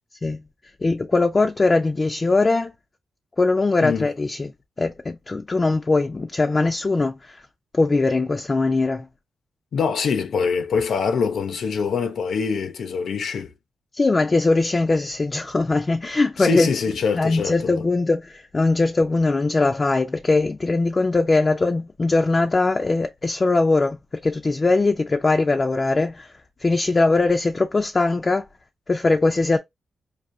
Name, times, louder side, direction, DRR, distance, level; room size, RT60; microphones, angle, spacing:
voice 1, 0.8-2.7 3.4-4.5 4.8-7.4 7.7-9.1 13.9-16.7 17.1-26.3 26.6-28.4 28.9-29.6, left 3 dB, 25° left, 0.4 m, -21 dB
voice 2, 9.7-13.5 16.4-17.8, left 5 dB, 70° left, 0.8 m, -24 dB
4.9 x 2.7 x 2.7 m
wide cardioid pair, 155°, 0 cm